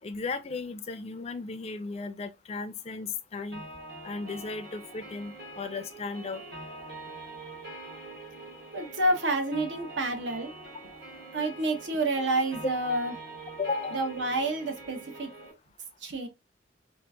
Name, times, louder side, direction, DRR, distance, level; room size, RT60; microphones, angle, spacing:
voice 1, 0.0-3.6 4.0-6.4 13.6-14.0, left 4 dB, 30° left, 0.4 m, -35 dB
sound 1, 3.5-15.5, right 2 dB, 60° right, 1.9 m, -44 dB
voice 2, 8.7-10.5 11.3-13.1 13.9-15.3 16.0-16.3, right 2 dB, 75° right, 0.9 m, -29 dB
3.8 x 2.5 x 2.3 m
head